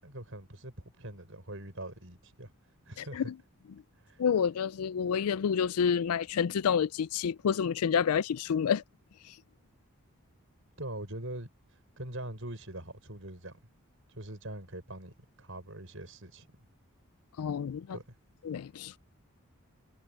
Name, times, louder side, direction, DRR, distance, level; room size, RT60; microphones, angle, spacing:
voice 1, 0.0-2.5 2.8-3.3 4.0-4.2 10.8-11.5 12.0-13.5 14.1-16.5 17.9-18.2, right 1 dB, 60° right, 5.9 m, -42 dB
voice 2, 3.0-3.3 4.2-8.8 17.4-18.0 18.4-19.0, left 7 dB, 85° left, 0.4 m, -29 dB
head